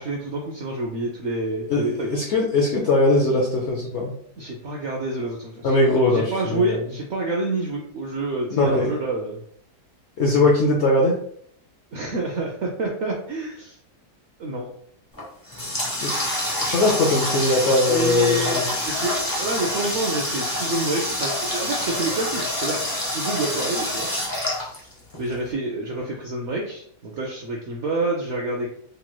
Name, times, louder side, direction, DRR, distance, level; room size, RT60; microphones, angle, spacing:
voice 1, 0.0-2.1 4.4-5.8 6.1-9.4 11.9-13.8 14.4-14.7 17.9-24.1 25.2-28.8, right 2 dB, 85° right, -1 dB, 0.6 m, -28 dB
voice 2, 1.7-4.1 5.6-6.8 8.5-8.9 10.2-11.2 16.0-16.1 16.5-18.6, left 2 dB, 65° left, -2 dB, 0.7 m, -20 dB
Water tap faucet, 15.1-25.3, left 1 dB, 30° left, 0.4 m, -27 dB
3.2 x 3.0 x 2.2 m, 0.63 s
omnidirectional pair, 1.8 m